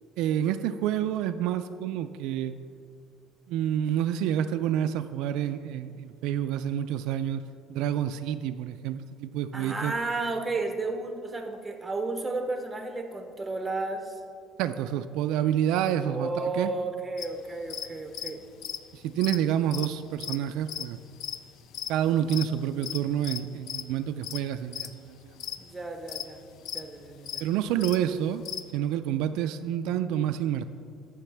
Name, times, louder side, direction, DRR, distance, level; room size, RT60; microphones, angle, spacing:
voice 1, 0.2-2.5 3.5-7.4 7.7-9.9 14.6-16.7 18.9-21.0 21.9-25.3 27.4-28.4 28.7-30.6, right 10 dB, 80° right, 9 dB, 0.3 m, -28 dB
voice 2, 9.5-14.2 16.0-18.5 25.6-26.4 26.7-27.4, right 3 dB, 10° right, 5 dB, 0.8 m, -33 dB
sound 1, 17.2-28.6, left 10 dB, 60° left, 0.4 m, -37 dB
14.0 x 6.3 x 3.4 m, 2.3 s
cardioid pair, 150°, 0 cm